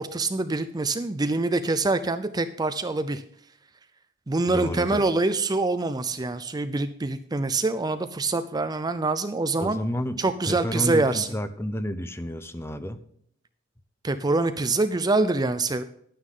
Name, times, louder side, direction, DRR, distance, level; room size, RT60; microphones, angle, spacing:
voice 1, 0.0-3.2 4.3-9.8 10.2-11.3 14.0-15.8, right 3 dB, 20° right, 10 dB, 0.5 m, -25 dB
voice 2, 4.5-5.1 9.6-13.0, equal, 15° left, 11 dB, 0.7 m, -31 dB
11.0 x 9.7 x 3.8 m, 0.67 s
head